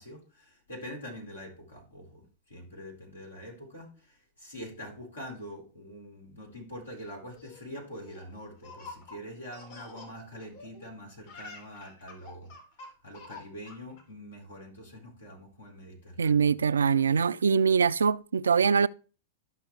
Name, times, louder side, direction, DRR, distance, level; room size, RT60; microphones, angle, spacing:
voice 1, 0.0-12.5 13.0-16.5, equal, 85° left, 4.3 m, -44 dB
Laughter, 7.1-10.9 11.2-14.0, left 3 dB, 55° left, 2.7 m, -48 dB
voice 2, 16.2-18.9, right 6 dB, 75° right, 0.3 m, -23 dB
12.5 x 6.0 x 3.3 m
figure-of-eight pair, 100°, 0 cm